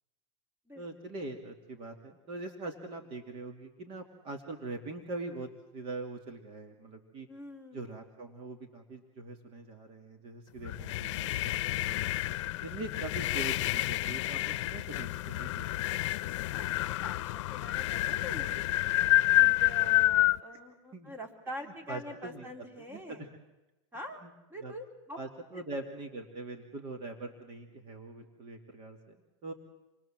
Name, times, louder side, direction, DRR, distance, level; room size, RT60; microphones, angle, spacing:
voice 1, 0.8-7.3 7.7-12.2 12.6-15.6 19.8-19.9 20.5-20.6 20.9-21.1 21.9-22.5 22.8-23.3 24.2-24.3 24.6-24.7 25.2-29.2 29.4-29.5, right 2 dB, 35° right, 4 dB, 2.5 m, -42 dB
voice 2, 7.3-7.9 16.4-18.7 19.4-23.3 23.9-24.2 24.5-25.2, equal, 15° right, 3 dB, 3.6 m, -45 dB
sound 1, 10.6-20.4, left 16 dB, 70° left, 0.8 m, -29 dB
28.0 x 22.5 x 7.6 m, 1.0 s
supercardioid pair, 145°, 16 cm